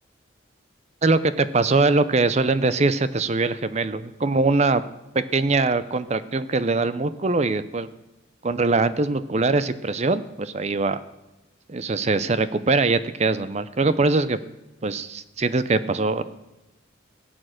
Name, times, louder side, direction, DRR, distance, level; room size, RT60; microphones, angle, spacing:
voice 1, 1.0-4.8 5.1-7.9 8.4-11.0 11.7-14.4 14.8-16.2, right 3 dB, 35° right, 14 dB, 0.6 m, -22 dB
17.0 x 8.8 x 6.4 m, 1.0 s
head